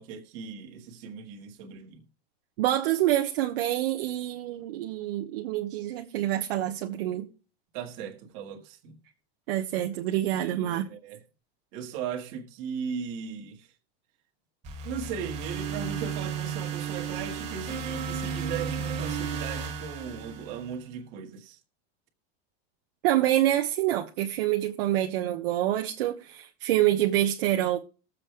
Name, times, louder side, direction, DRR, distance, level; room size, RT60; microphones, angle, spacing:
voice 1, 0.0-2.0 7.7-9.0 10.4-11.2 11.7-13.7 14.8-21.6, right 7 dB, 40° right, 1.9 m, -37 dB
voice 2, 2.6-7.3 9.5-10.9 23.0-27.8, right 13 dB, 60° right, 1.2 m, -26 dB
sound 1, 14.6-20.8, right 6 dB, 20° right, 1.8 m, -34 dB
20.5 x 7.6 x 3.3 m
supercardioid pair, 170°, 31 cm